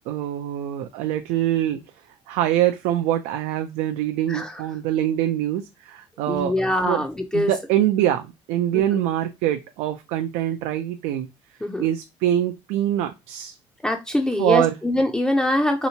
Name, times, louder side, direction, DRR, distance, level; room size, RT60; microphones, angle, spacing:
voice 1, 0.1-1.8 2.3-6.5 6.8-7.0 7.3-11.3 11.8-13.6 14.4-14.7, right 12 dB, 90° right, 0.4 m, -24 dB
voice 2, 4.3-4.6 6.3-7.5 8.7-9.0 11.6-11.9 13.8-15.9, left 1 dB, 5° left, 0.4 m, -23 dB
3.3 x 2.9 x 2.7 m
cardioid pair, 125°, 11 cm